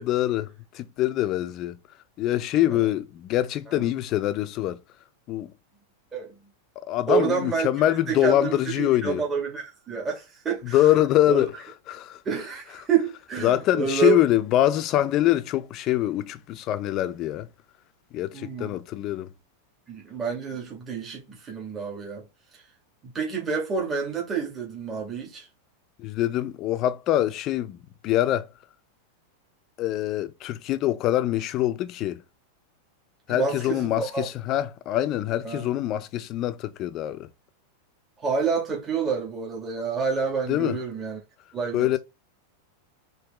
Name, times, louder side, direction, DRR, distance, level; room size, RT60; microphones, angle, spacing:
voice 1, 0.0-1.8 2.2-4.8 5.3-5.5 6.9-9.2 10.6-11.5 11.9-12.2 13.4-17.5 18.1-19.3 26.0-28.5 29.8-32.2 33.3-37.3 40.5-40.8 41.7-42.0, left 13 dB, 40° left, 0.6 m, -24 dB
voice 2, 7.1-10.9 11.3-11.5 12.2-14.2 18.3-18.8 19.9-22.3 22.5-22.6 23.0-25.5 33.3-34.3 35.4-35.7 38.2-41.2 41.5-42.0, right 5 dB, 20° right, 2.0 m, -28 dB
4.8 x 3.0 x 3.5 m
supercardioid pair, 130°, 0 cm